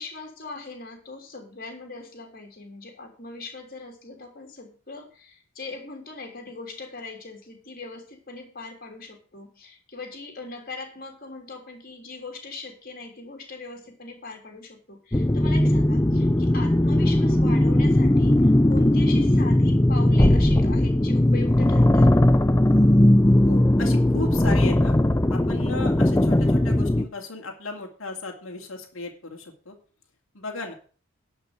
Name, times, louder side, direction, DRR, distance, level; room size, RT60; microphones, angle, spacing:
voice 1, 0.0-22.1, left 3 dB, 40° left, 2 dB, 3.4 m, -40 dB
sound 1, 15.1-27.1, left 1 dB, 15° left, 0.5 m, -19 dB
voice 2, 23.4-25.0 25.3-29.7 30.3-30.7, left 3 dB, 65° left, 1 dB, 2.4 m, -35 dB
11.5 x 5.5 x 7.9 m, 0.40 s
head